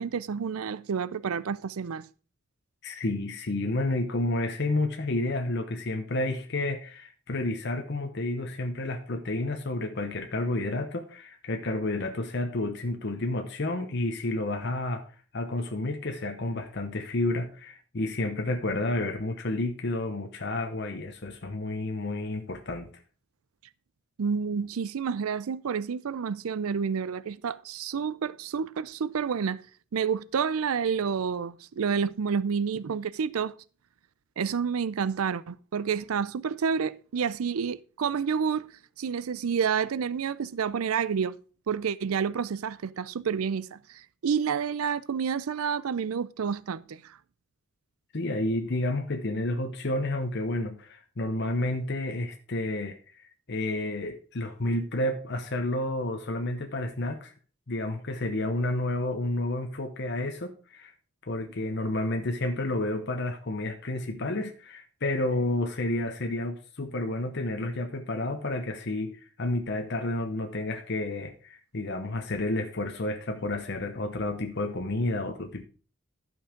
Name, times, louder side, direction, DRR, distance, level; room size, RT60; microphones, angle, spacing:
voice 1, 0.0-2.1 24.2-29.6 29.9-33.5 34.4-38.7 39.0-41.4 41.7-47.2, right 6 dB, 85° right, 0.5 m, -29 dB
voice 2, 2.8-15.0 15.3-22.9 48.1-57.3 57.7-60.9 61.3-75.6, left 2 dB, 50° left, 0.9 m, -30 dB
11.5 x 5.4 x 5.0 m
head